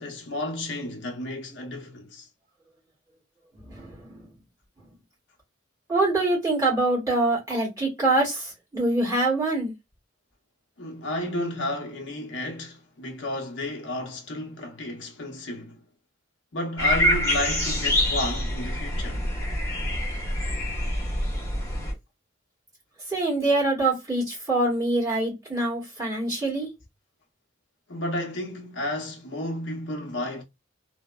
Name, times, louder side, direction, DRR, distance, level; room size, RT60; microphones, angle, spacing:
voice 1, 0.0-2.3 10.8-15.8 16.5-19.3 27.9-30.4, left 1 dB, 65° left, 0.7 m, -32 dB
voice 2, 3.5-4.3 5.9-9.7 23.1-26.7, right 2 dB, 20° right, 1.6 m, -25 dB
sound 1, 16.8-21.9, equal, 15° left, 1.0 m, -26 dB
2.8 x 2.0 x 2.2 m
head